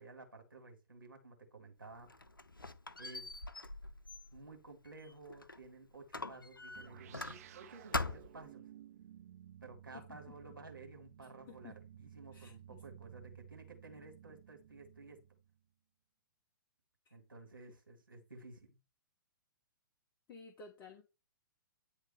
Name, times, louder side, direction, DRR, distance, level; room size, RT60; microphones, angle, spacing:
voice 1, 0.0-2.1 3.0-3.4 4.3-8.6 9.6-15.2 17.1-18.8, right 3 dB, 75° right, 2.1 m, -54 dB
Squeak, 1.8-5.7 6.1-7.6 7.9-8.5, left 2 dB, 85° left, 0.6 m, -43 dB
sound 1, 6.7-15.6, right 10 dB, 45° right, 0.5 m, -56 dB
voice 2, 11.5-11.8 12.3-12.8 17.0-17.1 20.3-21.0, left 4 dB, 25° left, 1.2 m, -54 dB
9.6 x 3.3 x 5.4 m
figure-of-eight pair, 115°, 11 cm